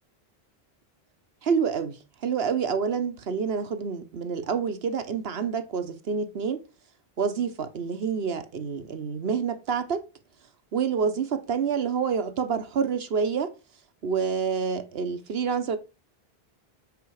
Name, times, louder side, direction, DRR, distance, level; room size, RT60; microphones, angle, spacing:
voice 1, 1.4-6.6 7.2-10.0 10.7-13.5 14.0-15.8, right 6 dB, 70° right, 1.2 m, -28 dB
8.2 x 4.5 x 4.8 m
omnidirectional pair, 1.1 m